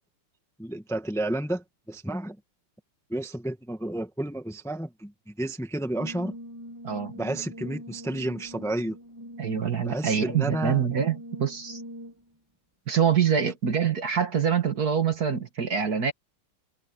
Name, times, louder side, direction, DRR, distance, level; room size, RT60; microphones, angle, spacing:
voice 1, 0.6-2.4 3.1-6.3 7.1-9.0 9.8-10.9, right 1 dB, ahead, 1.3 m, -31 dB
Brass instrument, 5.9-12.3, equal, 15° right, 0.7 m, -42 dB
voice 2, 9.4-11.8 12.9-16.1, right 7 dB, 45° right, 1.9 m, -25 dB
omnidirectional pair, 2.4 m